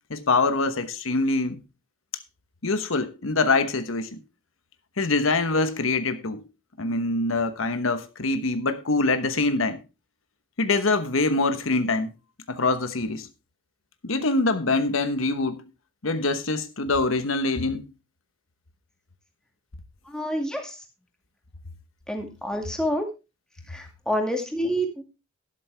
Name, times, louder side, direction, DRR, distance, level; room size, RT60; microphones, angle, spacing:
voice 1, 0.1-1.6 2.6-4.2 5.0-6.4 6.8-9.8 10.6-12.1 12.5-13.3 14.0-15.6 16.0-17.8, left 3 dB, 80° left, 1.1 m, -24 dB
voice 2, 20.1-20.8 22.1-23.1 23.7-25.0, equal, 5° left, 2.2 m, -28 dB
12.0 x 11.5 x 3.4 m
head